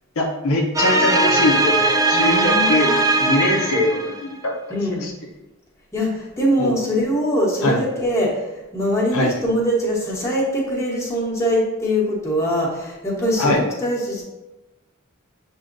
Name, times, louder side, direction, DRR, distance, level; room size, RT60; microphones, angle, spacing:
voice 1, 0.2-2.9 3.1-4.5 5.0-5.1 6.6-6.7 7.6-7.8 9.1-9.3 13.4-13.6, left 2 dB, 80° left, 0 dB, 0.8 m, -21 dB
sound 1, 0.7-4.3, right 2 dB, 15° right, 0.3 m, -19 dB
voice 2, 2.1-3.0 4.7-5.1 5.9-8.4 8.7-14.2, equal, 15° left, -5 dB, 1.1 m, -22 dB
7.3 x 2.7 x 2.6 m, 1.0 s
head